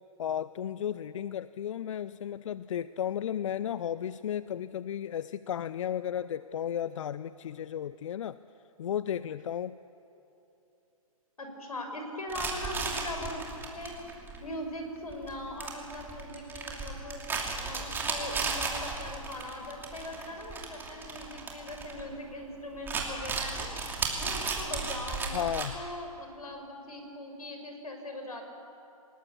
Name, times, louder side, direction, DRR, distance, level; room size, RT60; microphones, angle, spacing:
voice 1, 0.2-8.4 8.8-9.8 25.3-25.8, left 9 dB, 60° left, 16 dB, 0.5 m, -34 dB
voice 2, 11.4-13.4 13.7-14.0 14.4-17.2 17.6-23.8 24.2-28.5, left 1 dB, 85° left, 4 dB, 5.6 m, -40 dB
sound 1, 12.3-22.4 22.7-25.7, right 4 dB, 10° right, 2.9 m, -35 dB
28.5 x 19.5 x 7.2 m, 2.8 s
hypercardioid pair, 135°, 19 cm